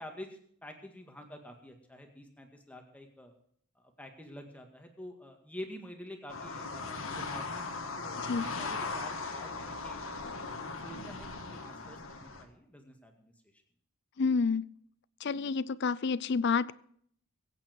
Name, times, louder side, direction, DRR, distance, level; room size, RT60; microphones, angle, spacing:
voice 1, 0.0-3.3 3.8-10.0 10.8-13.3, equal, 5° left, 3 dB, 2.0 m, -48 dB
sound 1, 6.3-12.4, left 3 dB, 65° left, 1.7 m, -38 dB
voice 2, 14.2-14.7 15.2-16.7, left 5 dB, 50° left, 19 dB, 0.5 m, -29 dB
22.0 x 8.9 x 4.6 m, 0.63 s
head